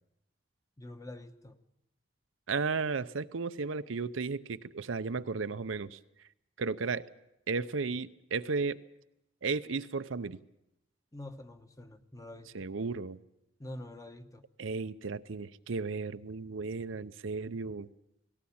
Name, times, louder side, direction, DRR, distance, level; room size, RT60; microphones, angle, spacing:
voice 1, 0.8-1.6 11.1-12.7 13.6-14.4, left 1 dB, 15° left, 1.0 m, -46 dB
voice 2, 2.5-6.0 6.6-7.1 7.5-8.8 9.4-10.4 12.5-13.2 14.6-17.9, right 4 dB, 85° right, 0.7 m, -34 dB
19.0 x 17.0 x 8.6 m
head